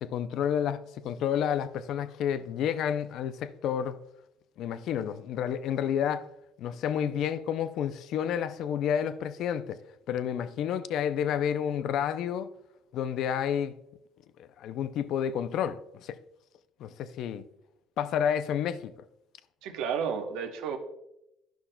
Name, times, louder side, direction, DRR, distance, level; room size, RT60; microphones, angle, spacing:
voice 1, 0.0-4.0 4.6-6.3 6.6-9.8 10.1-12.5 12.9-13.8 14.4-16.1 16.8-17.4 18.0-18.9, left 9 dB, 65° left, 0.4 m, -30 dB
voice 2, 19.6-20.8, right 7 dB, 80° right, 0.9 m, -32 dB
11.5 x 5.7 x 2.2 m
cardioid pair, 100°, 0 cm